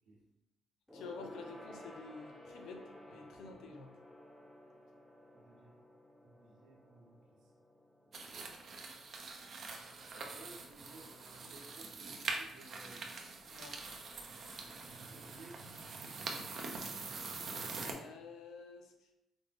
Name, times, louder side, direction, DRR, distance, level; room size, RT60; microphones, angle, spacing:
voice 1, 0.9-3.9 13.5-13.8 17.7-18.9, left 4 dB, 80° left, 4 dB, 0.6 m, -50 dB
Gong, 0.9-10.7 11.0-11.2 11.5-11.6, left 1 dB, 5° left, 0.8 m, -55 dB
voice 2, 3.1-3.6 5.3-5.8 6.2-7.5 8.0-8.3 10.1-13.0 14.9-15.7, right 2 dB, 85° right, -2 dB, 1.0 m, -58 dB
sound 1, 8.1-17.9, right 4 dB, 55° right, 0.6 m, -44 dB
5.1 x 2.1 x 3.4 m, 0.87 s
cardioid pair, 90°, 0 cm